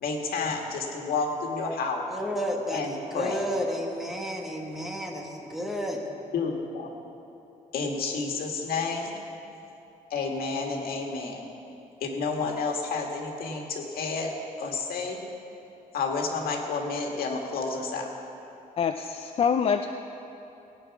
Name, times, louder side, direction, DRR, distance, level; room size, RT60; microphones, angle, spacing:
voice 1, 0.0-2.0 2.7-3.4 6.3-6.9 7.7-9.1 10.1-11.5 12.0-15.2 15.9-18.1, left 4 dB, 90° left, 1 dB, 1.9 m, -30 dB
voice 2, 2.1-6.1, equal, ahead, 0 dB, 1.3 m, -31 dB
voice 3, 18.8-19.9, left 7 dB, 40° left, 7 dB, 0.4 m, -25 dB
18.5 x 9.4 x 6.0 m, 2.9 s
wide cardioid pair, 175°, 15 cm